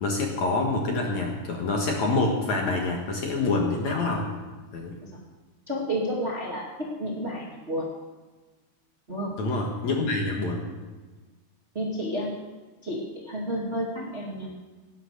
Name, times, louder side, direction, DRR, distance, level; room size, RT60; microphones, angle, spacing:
voice 1, 0.0-4.3 4.7-5.0 9.4-10.6, left 3 dB, 55° left, 1 dB, 2.4 m, -26 dB
voice 2, 5.7-7.9 9.1-9.3 11.7-12.3 12.8-14.5, equal, 25° right, -3 dB, 1.6 m, -31 dB
18.0 x 10.5 x 6.7 m, 1.3 s
omnidirectional pair, 4.6 m